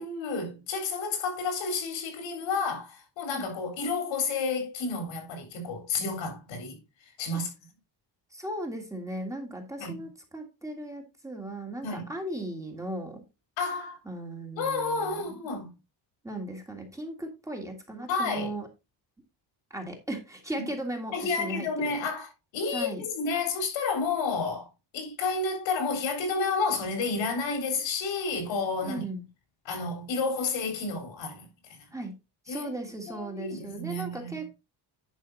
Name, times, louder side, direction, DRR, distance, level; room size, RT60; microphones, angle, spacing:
voice 1, 0.0-6.8 7.2-7.5 9.8-10.0 11.8-12.1 13.6-14.0 14.6-15.7 18.1-18.5 21.1-29.1 29.7-31.5 32.5-32.7 33.0-34.4, left 4 dB, 80° left, 3.9 m, -31 dB
voice 2, 8.3-13.2 14.1-15.3 16.2-18.7 19.7-22.0 22.7-23.0 28.8-29.2 31.9-32.1 32.5-34.6, right 1 dB, 5° right, 1.7 m, -37 dB
10.5 x 5.6 x 3.9 m
cardioid pair, 175°, 45 cm